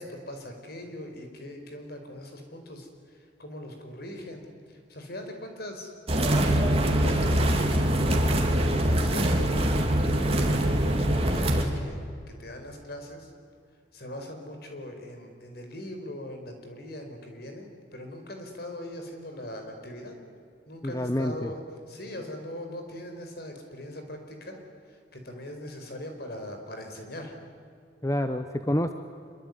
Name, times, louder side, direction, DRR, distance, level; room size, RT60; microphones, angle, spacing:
voice 1, 0.0-2.9 3.4-5.9 6.7-8.3 8.7-12.0 12.3-13.3 13.9-20.2 20.7-21.6 21.9-24.6 25.1-27.3, left 1 dB, 55° left, 5 dB, 4.8 m, -41 dB
sound 1, 6.1-11.6, right 1 dB, 30° right, 3.1 m, -23 dB
voice 2, 20.8-21.5 28.0-28.9, left 1 dB, 15° left, 8 dB, 0.9 m, -27 dB
26.0 x 23.5 x 9.6 m, 2.4 s
head